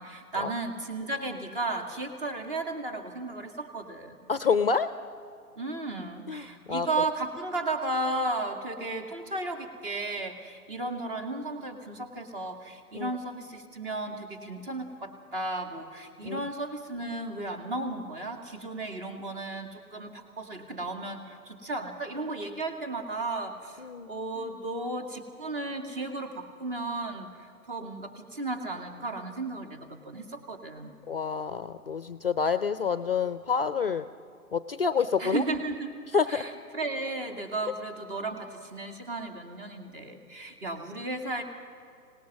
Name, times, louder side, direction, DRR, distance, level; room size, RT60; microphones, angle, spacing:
voice 1, 0.0-4.2 5.6-30.9 35.2-36.0 36.3-41.4, right 2 dB, 35° right, 5 dB, 2.2 m, -34 dB
voice 2, 4.3-4.9 6.3-6.9 12.9-13.1 16.2-16.4 23.8-24.1 31.1-34.0 34.5-35.4 36.1-36.5, left 5 dB, 40° left, 12 dB, 0.5 m, -28 dB
25.0 x 18.5 x 6.0 m, 2.3 s
figure-of-eight pair, 140°, 46 cm